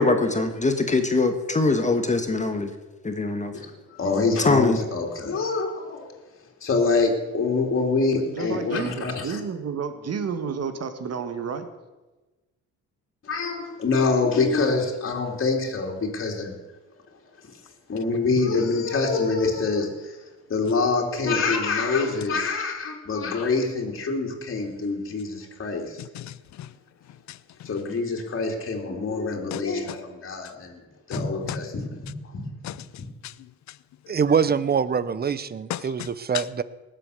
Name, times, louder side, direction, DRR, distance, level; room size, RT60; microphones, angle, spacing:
voice 1, 0.0-2.7 3.0-3.5 4.4-4.8, left 3 dB, 25° left, 1.5 m, -22 dB
voice 2, 3.5-6.1 6.6-9.4 13.2-16.6 17.9-20.2 20.5-26.0 27.6-30.8 31.1-32.8, left 4 dB, 45° left, 3.3 m, -25 dB
voice 3, 8.1-11.7, right 6 dB, 55° right, 1.9 m, -31 dB
voice 4, 26.0-26.7 27.3-27.7 29.5-29.6 31.1-31.2 32.6-32.8 33.2-33.3 33.7-33.8 35.7-36.1 36.3-36.4, left 13 dB, 65° left, 0.6 m, -35 dB
voice 5, 34.1-36.6, right 6 dB, 30° right, 0.8 m, -24 dB
19.0 x 7.8 x 6.7 m
cardioid pair, 90°, 30 cm